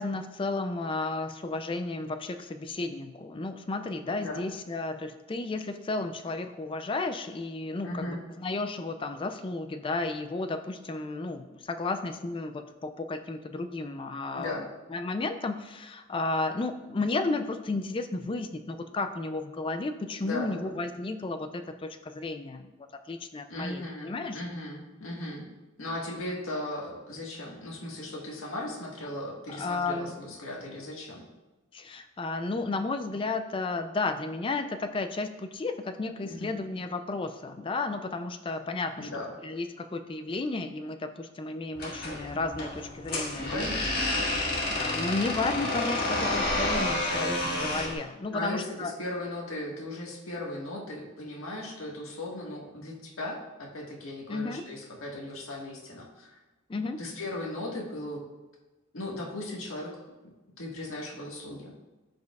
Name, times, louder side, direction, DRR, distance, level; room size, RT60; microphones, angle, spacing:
voice 1, 0.0-22.7 23.1-24.4 29.5-30.1 31.7-39.1 39.4-43.7 44.3-48.9 54.3-54.6 56.7-57.0, left 3 dB, 25° left, 8 dB, 0.4 m, -33 dB
voice 2, 7.8-8.2 14.3-14.7 20.2-20.7 23.5-25.5 25.8-31.3 36.2-36.5 39.0-39.3 43.4-44.2 48.3-56.4 57.0-58.2 58.9-59.9 60.6-61.7, left 1 dB, 85° left, -2 dB, 1.7 m, -37 dB
sound 1, 41.7-48.0, left 1 dB, 45° left, 1.7 m, -30 dB
13.0 x 5.2 x 2.4 m, 1.1 s
head